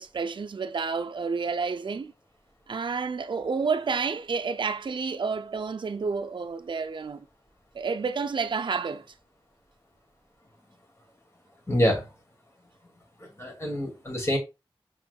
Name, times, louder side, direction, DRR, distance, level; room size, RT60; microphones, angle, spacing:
voice 1, 0.0-2.1 2.7-7.3 7.7-9.1, right 5 dB, 60° right, 0.5 m, -30 dB
voice 2, 11.7-12.1 13.2-14.4, equal, 30° left, 2.2 m, -26 dB
5.8 x 3.6 x 2.3 m
wide cardioid pair, 55°, 9 cm